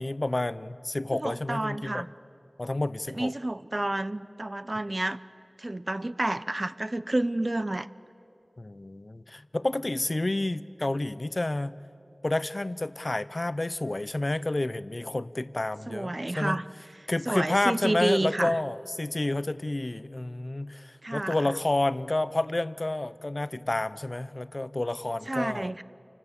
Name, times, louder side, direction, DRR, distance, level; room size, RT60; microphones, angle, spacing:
voice 1, 0.0-2.1 2.6-3.3 8.6-11.7 12.2-16.6 17.1-25.7, left 2 dB, 55° left, 17 dB, 0.5 m, -30 dB
voice 2, 1.1-2.1 3.1-5.2 5.6-7.9 15.9-16.6 17.3-18.6 21.0-21.5 25.3-25.8, right 1 dB, 45° right, 16 dB, 0.5 m, -30 dB
29.0 x 12.5 x 8.3 m, 2.8 s
wide cardioid pair, 40°, 0 cm